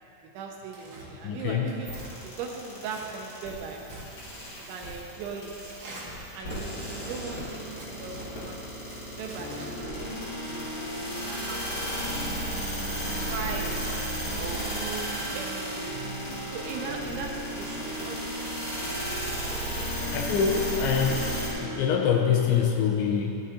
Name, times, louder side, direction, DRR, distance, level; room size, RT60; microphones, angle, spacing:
voice 1, 0.3-1.9 2.2-3.8 4.7-5.7 6.3-8.7 9.2-10.7 11.1-12.1 12.7-13.9 14.4-16.0 16.5-18.6 20.0-20.5, right 5 dB, 80° right, 1 dB, 3.0 m, -39 dB
Tearing, 0.7-1.1 1.7-2.1 2.8-3.1 3.5-4.1 4.6-5.1 5.6-6.1 6.7-7.1 7.8-8.3 8.9-9.7 10.4-11.4 12.0-12.6 13.2-13.7, right 2 dB, 65° right, 1.8 m, -47 dB
voice 2, 1.2-1.7 19.8-21.3 21.6-23.4, left 7 dB, 80° left, 2 dB, 2.7 m, -25 dB
sound 1, 1.8-21.5, right 1 dB, 45° left, 1.5 m, -35 dB
sound 2, 9.4-22.6, left 1 dB, 65° left, 3.1 m, -38 dB
15.5 x 6.9 x 3.8 m, 2.9 s
omnidirectional pair, 5.6 m